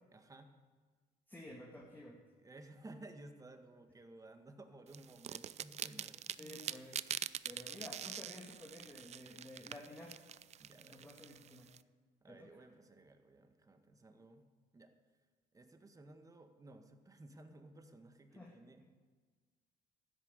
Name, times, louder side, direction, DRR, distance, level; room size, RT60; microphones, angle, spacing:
voice 1, 0.1-0.5 2.4-6.3 10.6-11.2 12.2-14.5 14.7-14.9 15.5-18.8, right 2 dB, 20° right, 6 dB, 1.8 m, -56 dB
voice 2, 1.3-2.2 6.4-7.1 7.4-10.1 10.8-11.7 12.3-12.5 18.3-18.6, left 1 dB, 10° left, -2 dB, 2.5 m, -52 dB
sound 1, 4.9-11.8, right 9 dB, 40° right, 0.5 m, -45 dB
13.5 x 9.7 x 9.8 m, 1.4 s
cardioid pair, 110°, 17 cm